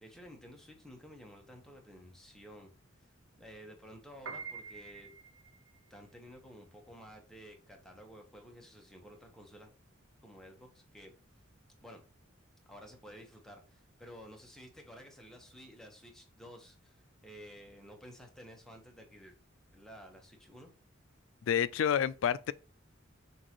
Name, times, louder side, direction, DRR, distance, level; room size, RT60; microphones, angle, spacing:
voice 1, 0.0-2.7 3.0-3.1 3.4-5.1 5.9-9.7 10.2-11.1 11.8-12.1 12.7-19.4 19.7-20.7, equal, 5° left, 0.9 m, -53 dB
Piano, 4.1-14.5, right 5 dB, 85° right, 0.5 m, -50 dB
voice 2, 21.4-22.5, left 8 dB, 70° left, 0.3 m, -29 dB
6.1 x 2.6 x 3.0 m
head